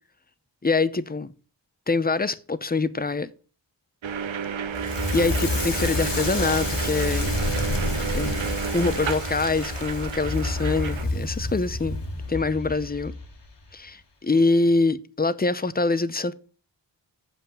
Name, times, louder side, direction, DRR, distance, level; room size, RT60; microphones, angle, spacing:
voice 1, 0.6-1.3 1.9-3.3 5.1-7.3 8.1-12.0 12.3-13.1 13.7-16.3, left 3 dB, 20° left, 0.7 m, -24 dB
sound 1, 4.0-11.0, right 7 dB, 75° right, 0.8 m, -31 dB
Crackle, 4.7-13.7, left 2 dB, 60° left, 1.8 m, -29 dB
7.3 x 5.7 x 7.2 m
wide cardioid pair, 55°, 46 cm